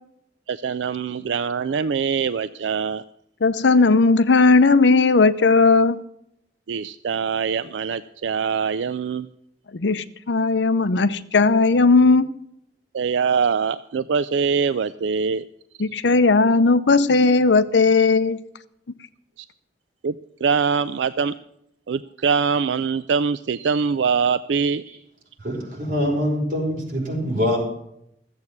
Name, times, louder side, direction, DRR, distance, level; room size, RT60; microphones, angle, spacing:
voice 1, 0.5-3.0 6.7-9.3 12.9-15.4 20.0-20.1 20.4-21.3 21.9-24.8, right 6 dB, 80° right, 0.4 m, -23 dB
voice 2, 3.4-6.0 9.7-12.3 15.8-18.4, left 3 dB, 80° left, 0.7 m, -17 dB
voice 3, 25.4-27.6, equal, 50° right, 4.9 m, -24 dB
14.0 x 8.0 x 7.3 m
head